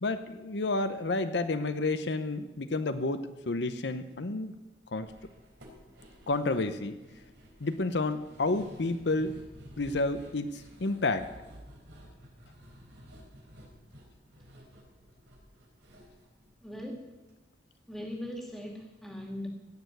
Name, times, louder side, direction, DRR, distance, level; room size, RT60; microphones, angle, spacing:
voice 1, 0.0-4.5 4.9-5.1 6.3-7.0 7.6-9.4 9.8-11.3, left 2 dB, 70° left, 10 dB, 0.7 m, -30 dB
sound 1, 5.0-17.3 17.6-17.7 18.0-18.1, equal, 75° right, 4.1 m, -53 dB
voice 2, 16.6-17.0 17.9-19.5, left 1 dB, ahead, 1 dB, 2.2 m, -39 dB
16.5 x 6.9 x 9.3 m, 1.1 s
head